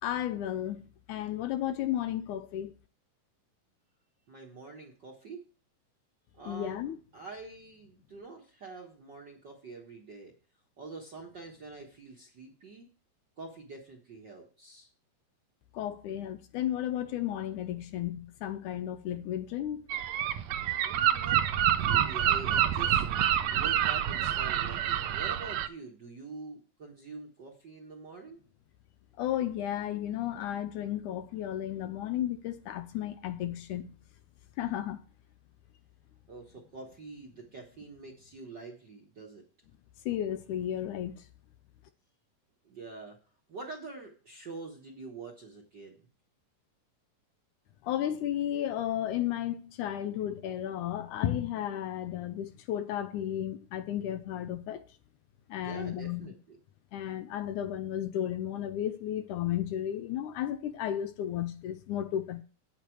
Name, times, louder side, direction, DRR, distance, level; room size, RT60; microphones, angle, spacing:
voice 1, 0.0-0.8 1.1-2.7 6.5-7.0 15.7-19.8 29.2-34.0 34.6-35.0 40.1-41.3 47.8-54.8 55.5-56.3 56.9-62.4, left 11 dB, 80° left, 2.0 m, -33 dB
voice 2, 4.3-5.5 6.3-10.3 10.8-12.8 13.4-14.9 20.8-21.4 21.7-28.4 36.3-39.4 42.6-43.2 43.5-46.1 55.5-56.6, right 3 dB, 50° right, 1.3 m, -46 dB
Gull seagull, 19.9-25.7, right 10 dB, 80° right, 1.6 m, -27 dB
9.1 x 8.4 x 4.6 m
omnidirectional pair, 3.9 m